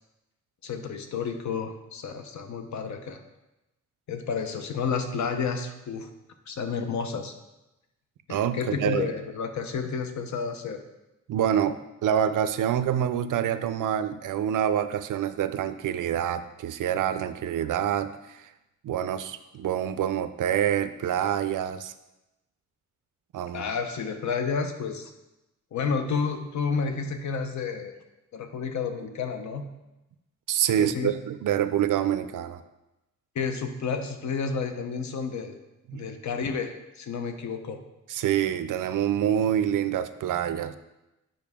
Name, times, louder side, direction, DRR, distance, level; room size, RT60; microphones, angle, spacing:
voice 1, 0.6-3.2 4.1-6.1 6.5-7.3 8.3-10.8 23.5-25.1 25.7-27.9 28.3-29.6 30.8-31.1 33.3-35.6 35.9-37.8, left 5 dB, 65° left, 6 dB, 0.8 m, -30 dB
voice 2, 8.3-9.1 11.3-11.8 12.0-18.4 18.8-21.9 23.3-23.7 30.5-32.6 35.9-36.0 38.1-40.8, right 10 dB, 80° right, 12 dB, 0.5 m, -26 dB
8.7 x 5.3 x 3.6 m, 0.96 s
wide cardioid pair, 165°, 31 cm